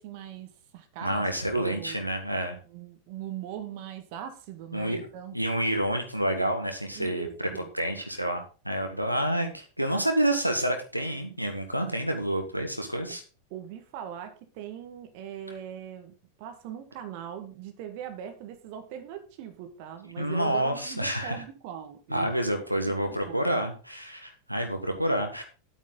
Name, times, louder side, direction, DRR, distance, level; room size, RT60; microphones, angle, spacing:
voice 1, 0.0-1.3 1.6-2.0 2.6-5.3 6.9-7.7 13.5-22.3 22.9-23.4, right 9 dB, 45° right, 7 dB, 1.7 m, -40 dB
voice 2, 1.0-2.6 4.7-5.0 5.3-7.5 7.7-13.2 20.2-21.4 22.1-25.4, right 1 dB, 90° right, 4 dB, 1.7 m, -28 dB
10.0 x 8.7 x 3.9 m, 0.34 s
figure-of-eight pair, 90°, 0 cm